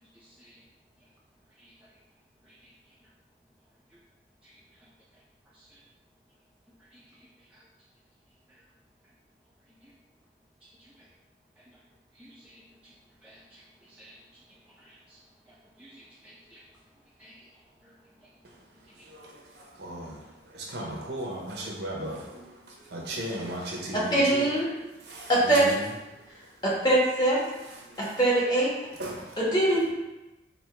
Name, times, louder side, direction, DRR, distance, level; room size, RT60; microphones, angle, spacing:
voice 1, 12.2-12.6 13.2-13.6 13.9-14.2 14.8-15.2 15.5-16.6 17.2-17.4 17.8-17.9 19.0-19.1, equal, 10° right, -7 dB, 0.5 m, -54 dB
voice 2, 19.1-20.2 20.5-22.5 22.9-24.4 25.1-25.7 27.9-28.2 29.0-29.3, right 1 dB, 70° right, -1 dB, 0.8 m, -36 dB
voice 3, 23.9-24.7 25.3-25.8 26.6-27.4 28.0-28.7 29.4-29.9, right 1 dB, 25° left, -6 dB, 1.2 m, -23 dB
4.3 x 2.7 x 3.3 m, 1.0 s
head